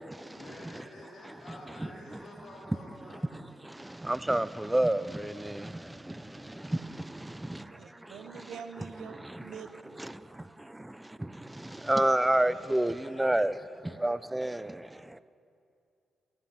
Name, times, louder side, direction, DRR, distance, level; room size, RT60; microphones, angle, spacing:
voice 1, 0.3-3.3 6.3-6.8 8.5-8.6 12.1-14.9, left 1 dB, 55° left, 3.5 m, -50 dB
voice 2, 3.3-8.5 9.1-9.4 10.0-15.2, right 1 dB, 15° right, 0.4 m, -31 dB
voice 3, 7.7-10.0, right 7 dB, 75° right, 0.8 m, -45 dB
13.0 x 10.5 x 6.0 m
supercardioid pair, 45°, 0 cm